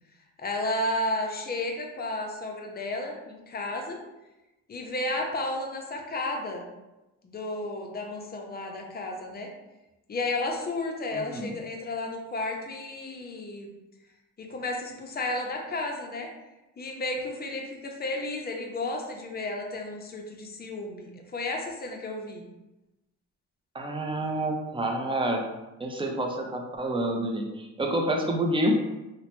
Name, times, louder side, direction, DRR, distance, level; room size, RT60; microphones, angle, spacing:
voice 1, 0.4-4.0 4.7-6.6 7.2-9.5 10.1-13.7 14.4-16.3 16.8-22.4, left 2 dB, 30° left, 1 dB, 0.6 m, -32 dB
voice 2, 11.1-11.6 23.7-25.4 25.8-28.7, right 1 dB, 15° right, 1 dB, 0.5 m, -28 dB
2.9 x 2.1 x 2.9 m, 1.0 s
cardioid pair, 90°, 30 cm